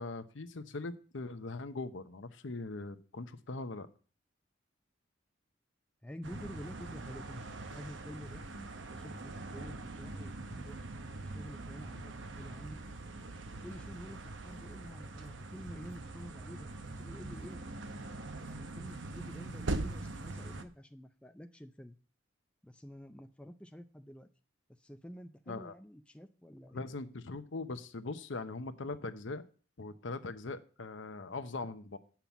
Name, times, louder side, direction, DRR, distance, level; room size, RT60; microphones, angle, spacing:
voice 1, 0.0-3.9 25.5-25.7 26.7-29.4 29.8-32.0, left 3 dB, 70° left, 10 dB, 0.8 m, -41 dB
voice 2, 6.0-7.4 7.7-8.4 8.9-12.8 13.6-16.7 17.0-17.6 18.0-18.2 18.4-22.0 22.6-24.3 24.8-26.9, equal, 5° left, 7 dB, 0.4 m, -49 dB
sound 1, 6.2-20.6, right 2 dB, 65° right, 0.9 m, -42 dB
8.8 x 5.8 x 6.9 m, 0.39 s
head